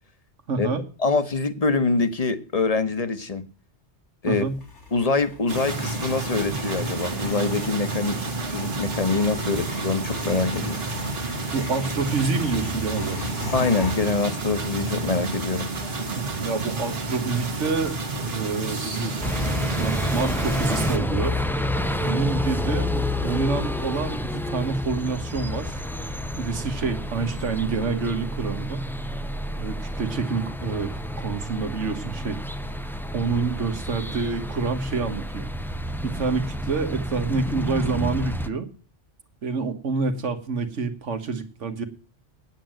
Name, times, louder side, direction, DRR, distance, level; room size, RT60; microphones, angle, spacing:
voice 1, 0.5-0.8 4.2-4.6 11.5-13.2 16.1-17.9 18.3-21.4 22.0-25.8 26.4-28.8 29.6-30.9 31.2-32.4 32.8-35.5 36.0-38.7 39.4-41.8, right 4 dB, 85° right, 1.7 m, -27 dB
voice 2, 1.0-3.4 4.2-4.4 4.9-10.8 13.5-15.7, left 4 dB, 35° left, 1.1 m, -25 dB
sound 1, 4.2-19.1, left 1 dB, 75° left, 3.2 m, -38 dB
sound 2, 5.5-21.0, right 3 dB, 55° right, 1.6 m, -30 dB
sound 3, 19.2-38.5, left 1 dB, 5° left, 0.4 m, -29 dB
9.1 x 8.5 x 7.5 m
omnidirectional pair, 1.2 m